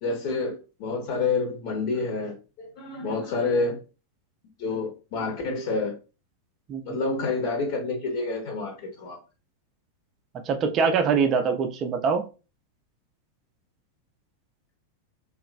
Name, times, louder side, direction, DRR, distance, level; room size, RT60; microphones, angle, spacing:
voice 1, 0.0-3.8 4.6-6.0 6.8-9.2, left 3 dB, 50° left, 0.8 m, -28 dB
voice 2, 10.5-12.2, right 5 dB, 30° right, 0.5 m, -23 dB
3.0 x 2.4 x 2.4 m
figure-of-eight pair, 90°, 0 cm